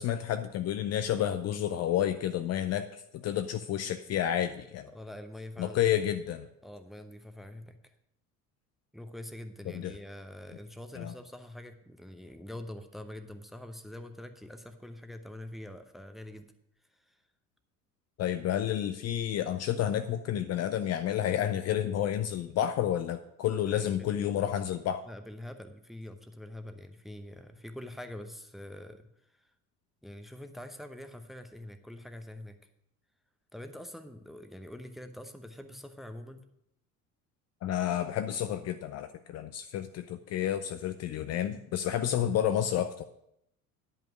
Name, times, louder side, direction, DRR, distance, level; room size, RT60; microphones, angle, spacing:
voice 1, 0.0-4.9 5.6-6.5 9.7-9.9 10.9-11.1 18.2-25.0 37.6-43.0, left 10 dB, 35° left, 9 dB, 0.5 m, -30 dB
voice 2, 4.9-5.9 6.6-7.8 8.9-16.5 16.9-17.2 23.7-24.5 25.1-29.0 30.0-32.6 33.5-36.4, left 1 dB, ahead, 7 dB, 0.8 m, -45 dB
10.5 x 5.4 x 6.2 m, 0.78 s
figure-of-eight pair, 65°, 45 cm